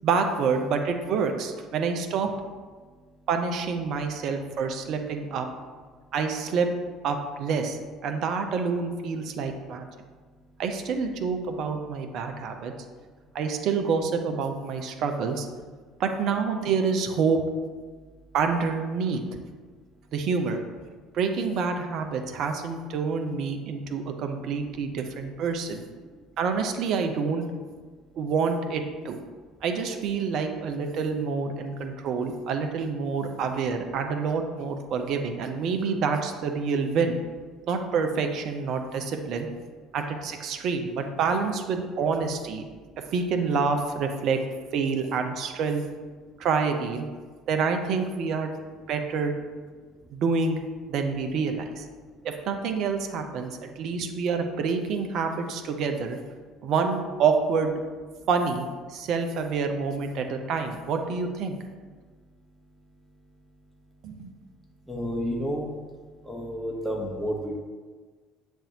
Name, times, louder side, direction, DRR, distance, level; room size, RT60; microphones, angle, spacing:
voice 1, 0.0-2.3 3.3-5.5 6.1-6.7 7.0-9.9 10.6-12.7 13.3-15.5 16.0-17.4 18.3-19.2 20.1-20.6 21.1-25.8 26.4-27.4 28.2-29.2 29.6-37.2 37.7-39.5 39.9-42.6 43.1-44.4 44.7-45.8 46.4-47.1 47.5-48.5 48.9-49.3 50.1-50.6 50.9-51.9 52.2-56.2 56.6-57.7 58.3-61.6 64.0-64.3, right 5 dB, 50° right, 5 dB, 0.4 m, -27 dB
voice 2, 64.9-65.7 66.2-67.6, equal, ahead, -1 dB, 0.9 m, -30 dB
7.0 x 2.5 x 2.8 m, 1.5 s
figure-of-eight pair, 55°, 0 cm